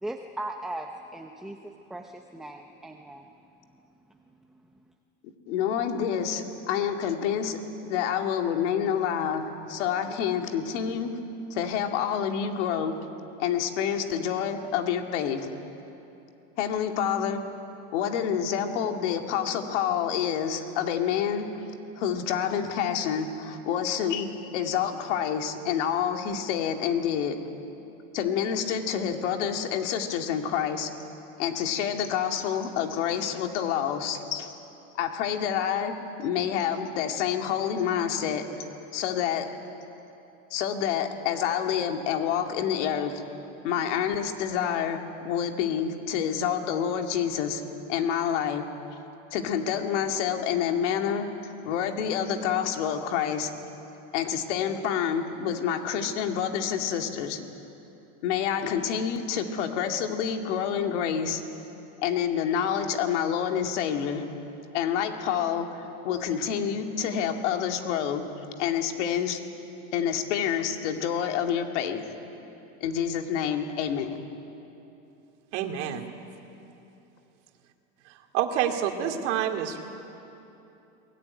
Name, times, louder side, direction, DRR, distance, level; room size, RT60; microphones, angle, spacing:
voice 1, 0.0-3.3, right 1 dB, ahead, 3 dB, 0.6 m, -38 dB
voice 2, 5.5-11.1 11.5-12.9 13.4-15.5 16.6-17.4 17.9-21.5 22.0-27.4 28.1-30.9 31.4-34.5 34.9-35.9 36.2-38.7 38.9-39.5 40.5-43.2 43.6-45.0 45.2-47.6 47.9-48.6 49.3-53.5 54.1-57.4 58.2-61.4 62.0-64.2 64.7-68.2 68.6-69.4 69.9-72.1 72.8-74.2, left 8 dB, 75° left, 4 dB, 2.4 m, -28 dB
voice 3, 75.5-76.1 78.1-79.8, right 9 dB, 75° right, 4 dB, 2.4 m, -28 dB
22.5 x 20.0 x 9.7 m, 2.9 s
supercardioid pair, 170°, 36 cm